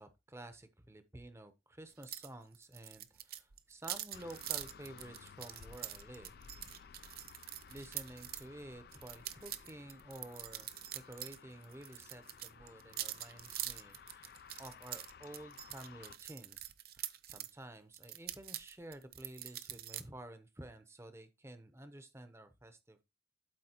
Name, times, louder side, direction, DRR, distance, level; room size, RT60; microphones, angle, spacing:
voice 1, 0.0-6.4 7.7-10.7 10.9-14.3 14.6-16.7 16.9-23.0, right 1 dB, 15° right, 0.8 m, -51 dB
sound 1, 2.0-2.3 2.5-8.4 8.9-11.4 11.6-17.5 17.9-20.0, right 13 dB, 55° right, 0.5 m, -44 dB
sound 2, 4.1-16.2, left 6 dB, 55° left, 0.4 m, -57 dB
12.0 x 4.3 x 2.9 m
head